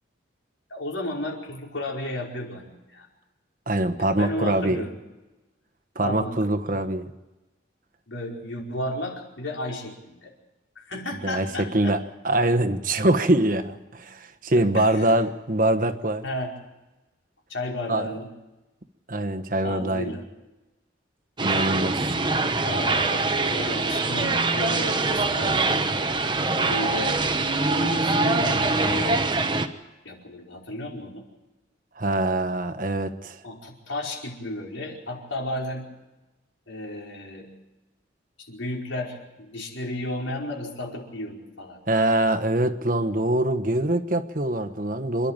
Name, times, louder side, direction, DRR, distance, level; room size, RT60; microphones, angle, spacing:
voice 1, 0.7-3.1 4.0-5.0 6.0-6.4 6.7-6.8 8.1-10.3 10.7-12.0 14.5-15.1 16.2-16.5 17.5-18.3 19.6-20.3 22.6-25.6 26.6-27.2 27.7-29.3 30.0-31.2 33.4-35.9 36.7-37.5 38.4-41.8, left 1 dB, 85° left, -1 dB, 5.1 m, -33 dB
voice 2, 3.7-4.8 5.9-7.0 11.2-16.2 17.9-18.1 19.1-20.2 21.4-22.0 32.0-33.4 41.9-45.3, right 1 dB, 45° right, 6 dB, 1.3 m, -24 dB
sound 1, 21.4-29.7, right 3 dB, 25° right, 1.1 m, -24 dB
27.5 x 11.5 x 9.0 m, 1.1 s
head